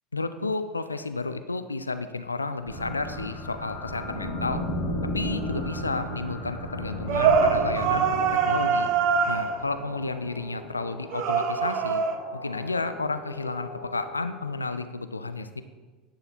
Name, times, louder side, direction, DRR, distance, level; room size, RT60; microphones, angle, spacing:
voice 1, 0.1-4.6 5.1-8.1 8.4-8.9 9.3-12.0 12.3-15.6, left 3 dB, 80° left, 10 dB, 0.4 m, -31 dB
sound 1, 2.6-14.6, equal, 65° left, 3.2 m, -36 dB
sound 2, 7.1-9.8 11.1-12.2, right 6 dB, 50° right, 0.8 m, -23 dB
10.0 x 8.1 x 4.3 m, 1.3 s
figure-of-eight pair, 75°, 0 cm